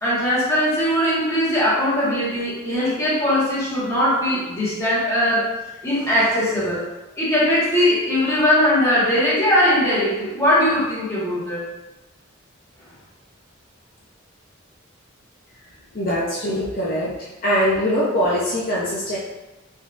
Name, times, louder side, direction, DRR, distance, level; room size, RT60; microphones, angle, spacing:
voice 1, 0.0-5.5 5.8-6.8 7.2-11.7, equal, 15° left, -10 dB, 1.3 m, -20 dB
voice 2, 15.9-17.1 17.4-19.2, equal, 45° left, -7 dB, 0.6 m, -22 dB
3.6 x 3.1 x 2.5 m, 1.1 s
head